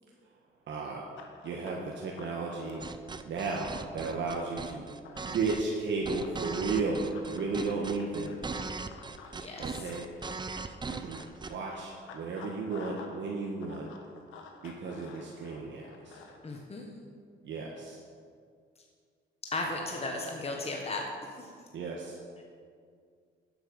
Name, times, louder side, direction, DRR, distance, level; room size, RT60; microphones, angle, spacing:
voice 1, 0.7-1.1 1.4-2.8 3.2-4.9 5.2-8.4 9.6-10.1 10.9-11.2 11.5-13.9 14.6-16.2 17.4-18.0 21.7-22.2, right 4 dB, 65° right, -1 dB, 1.4 m, -34 dB
Run, 1.2-5.5 6.2-13.2 13.4-16.6, left 5 dB, 90° left, 1.3 m, -51 dB
sound 1, 2.8-11.5, right 4 dB, 20° right, 0.6 m, -39 dB
voice 2, 9.3-9.9 16.4-16.9 19.5-21.5 22.4-22.5, left 2 dB, 30° left, 0 dB, 1.5 m, -36 dB
12.0 x 7.9 x 5.4 m, 2.1 s
cardioid pair, 90°, 20 cm